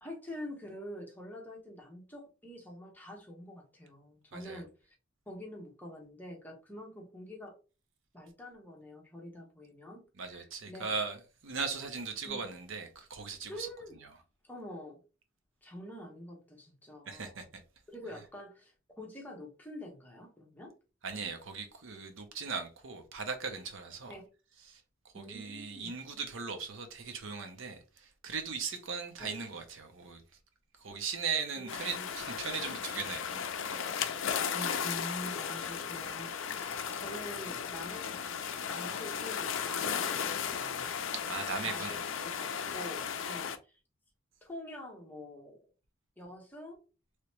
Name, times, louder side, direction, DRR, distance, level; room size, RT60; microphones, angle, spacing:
voice 1, 0.0-4.9 5.3-7.6 8.1-10.0 10.3-10.8 12.2-12.4 13.5-14.0 14.4-15.0 15.6-17.5 17.9-20.7 24.1-24.2 25.1-25.9 29.2-29.4 31.6-32.0 34.5-38.1 38.7-40.9 41.6-41.8 42.4-43.8 44.4-45.6 46.2-46.8, left 1 dB, 10° left, 0.9 m, -46 dB
voice 2, 4.3-4.6 10.2-13.7 14.0-14.1 17.1-17.6 21.0-24.1 24.6-30.2 30.8-33.5 41.1-42.0, right 5 dB, 65° right, 0.7 m, -38 dB
sound 1, 31.7-43.6, left 7 dB, 65° left, 0.4 m, -35 dB
3.2 x 2.9 x 3.0 m
head